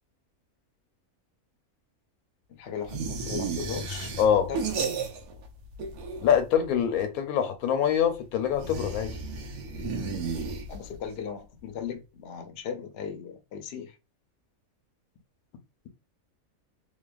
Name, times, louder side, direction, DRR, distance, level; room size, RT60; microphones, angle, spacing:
voice 1, 2.5-4.1 4.5-4.7 10.7-14.0, left 7 dB, 65° left, 0.6 m, -37 dB
sound 1, 2.9-5.5 5.7-6.6 8.5-11.1, right 4 dB, 90° right, 1.1 m, -33 dB
voice 2, 4.2-4.5 6.2-9.1, left 8 dB, 85° left, 1.1 m, -24 dB
2.9 x 2.1 x 2.3 m
omnidirectional pair, 1.6 m